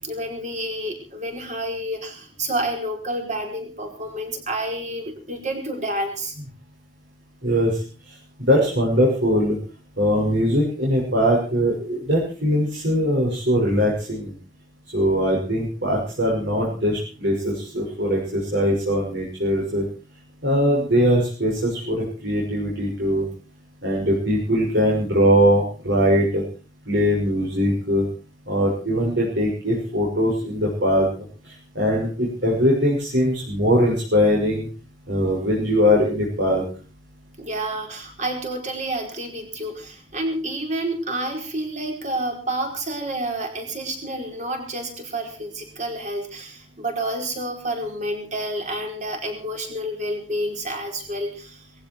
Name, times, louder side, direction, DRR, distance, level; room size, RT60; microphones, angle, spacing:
voice 1, 0.0-6.3 37.4-51.6, right 1 dB, 45° right, 2 dB, 4.8 m, -29 dB
voice 2, 7.4-7.8 8.4-9.6 10.0-14.3 14.9-19.8 20.4-23.3 23.8-26.4 26.9-28.1 28.5-31.1 31.4-34.7 35.1-36.6, equal, 70° right, -3 dB, 6.3 m, -21 dB
19.5 x 15.5 x 4.7 m, 0.38 s
head